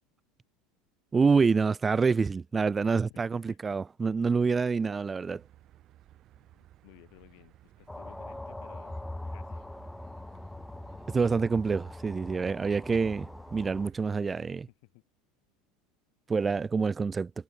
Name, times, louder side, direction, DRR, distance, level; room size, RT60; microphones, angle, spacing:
voice 1, 1.1-5.4 11.1-14.7 16.3-17.3, right 5 dB, 20° right, 0.3 m, -27 dB
voice 2, 3.1-3.6 6.3-9.1 9.3-9.6 14.5-15.0, left 34 dB, 55° left, 5.8 m, -57 dB
sound 1, 5.3-14.1, right 13 dB, 45° right, 5.6 m, -58 dB
sound 2, 7.9-13.9, left 1 dB, 5° left, 1.3 m, -42 dB
figure-of-eight pair, 75°, 0 cm